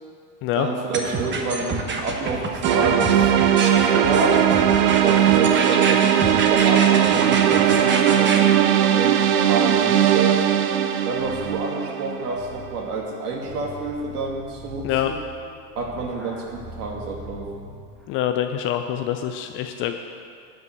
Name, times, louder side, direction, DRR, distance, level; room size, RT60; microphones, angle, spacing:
voice 1, 0.6-4.4 5.0-10.4 11.0-15.2 15.8-17.5, right 3 dB, 65° right, 0 dB, 2.4 m, -28 dB
sound 1, 0.9-8.4, right 3 dB, 20° right, 1.3 m, -27 dB
sound 2, 2.6-12.6, right 10 dB, 40° right, 0.8 m, -19 dB
sound 3, 11.2-18.0, left 2 dB, ahead, 1.5 m, -42 dB
voice 2, 18.1-19.9, left 11 dB, 25° left, 6 dB, 0.4 m, -25 dB
12.5 x 5.5 x 8.1 m, 2.3 s
hypercardioid pair, 100°, 49 cm